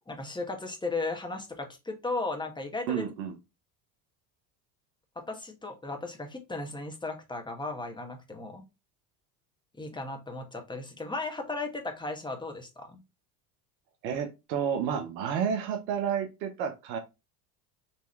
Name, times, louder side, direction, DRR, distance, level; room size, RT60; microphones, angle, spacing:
voice 1, 0.1-3.1 5.1-8.6 9.8-13.0, left 3 dB, 10° left, 3 dB, 1.4 m, -36 dB
voice 2, 2.9-3.3 14.0-17.0, right 8 dB, 85° right, 6 dB, 1.0 m, -30 dB
4.4 x 3.4 x 3.1 m, 0.25 s
hypercardioid pair, 80°, 49 cm